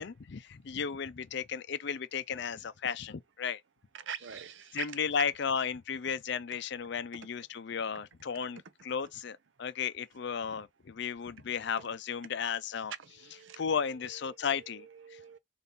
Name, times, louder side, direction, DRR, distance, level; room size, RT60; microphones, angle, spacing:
voice 1, 0.0-3.6 4.7-12.9 13.6-15.4, left 6 dB, 60° left, 0.5 m, -34 dB
voice 2, 3.9-5.0 6.5-6.6 11.4-11.5 11.8-11.9 12.2-12.3 12.9-15.4, right 7 dB, 65° right, 0.6 m, -45 dB
4.0 x 2.6 x 3.6 m
head